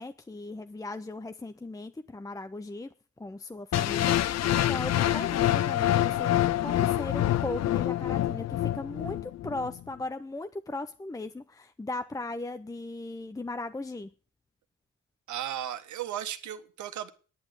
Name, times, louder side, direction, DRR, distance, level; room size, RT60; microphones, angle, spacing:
voice 1, 0.0-2.9 3.2-14.1, left 2 dB, 10° left, 0.6 m, -38 dB
sound 1, 3.7-9.7, left 13 dB, 60° left, 0.6 m, -26 dB
voice 2, 15.3-17.1, right 10 dB, 75° right, 1.5 m, -35 dB
10.0 x 9.3 x 8.0 m
cardioid pair, 90°, 30 cm